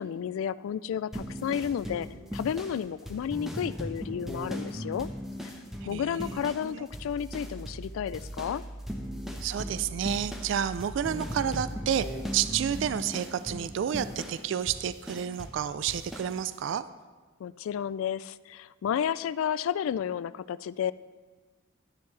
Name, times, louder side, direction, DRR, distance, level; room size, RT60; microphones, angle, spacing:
voice 1, 0.0-2.1 2.3-5.1 5.9-8.6 17.4-20.9, left 8 dB, 90° left, 17 dB, 0.3 m, -32 dB
sound 1, 1.1-6.7 6.9-7.9 8.1-15.6 15.9-16.3, equal, ahead, 0.8 m, -38 dB
voice 2, 5.8-6.9 9.4-16.9, right 9 dB, 65° right, 14 dB, 0.3 m, -30 dB
sound 2, 6.9-12.7, right 1 dB, 15° left, 2.4 m, -42 dB
11.0 x 10.5 x 3.3 m, 1.3 s
head